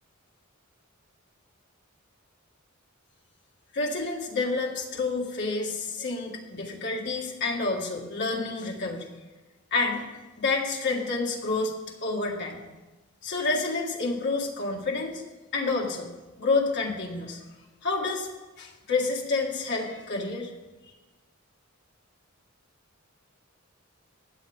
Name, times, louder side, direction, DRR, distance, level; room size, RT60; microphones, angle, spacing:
voice 1, 3.7-9.1 9.7-10.0 10.4-11.7 12.0-12.6 13.2-15.2 15.5-16.1 16.4-17.4 17.8-18.3 18.6-20.5, left 3 dB, 55° left, -1 dB, 1.9 m, -29 dB
16.0 x 9.4 x 3.6 m, 1.1 s
head